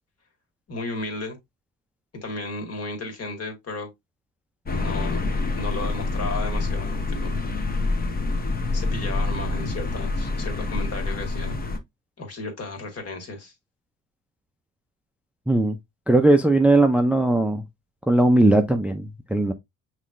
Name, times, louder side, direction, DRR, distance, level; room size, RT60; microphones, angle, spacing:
voice 1, 0.7-1.4 2.1-3.9 4.7-5.2 5.5-7.4 8.7-11.6 12.2-13.5, left 3 dB, 45° left, 1.8 m, -34 dB
sound 1, 4.7-11.8, left 3 dB, 25° left, 0.9 m, -26 dB
voice 2, 15.5-15.8 16.1-17.6 18.1-19.5, right 2 dB, 5° right, 0.4 m, -18 dB
5.6 x 3.2 x 2.5 m
cardioid pair, 95°, 33 cm